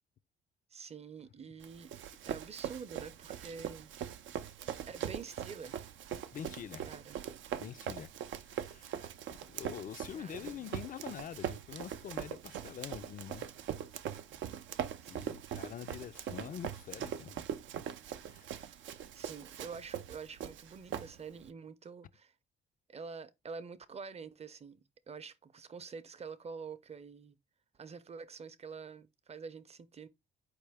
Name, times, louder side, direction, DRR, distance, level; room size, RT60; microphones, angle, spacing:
voice 1, 0.7-1.9 2.3-3.9 4.9-5.8 6.8-7.2 10.1-10.7 15.0-15.4 18.6-18.8 19.1-22.3 22.9-27.4 27.8-30.1, right 5 dB, 30° right, 0.6 m, -47 dB
Run, 1.6-21.5, right 9 dB, 75° right, 0.5 m, -41 dB
voice 2, 6.3-6.9 7.6-8.1 8.4-9.1 9.5-13.5 15.1-17.5 18.2-18.7, left 9 dB, 45° left, 0.4 m, -45 dB
4.5 x 3.2 x 3.4 m
cardioid pair, 90°, 20 cm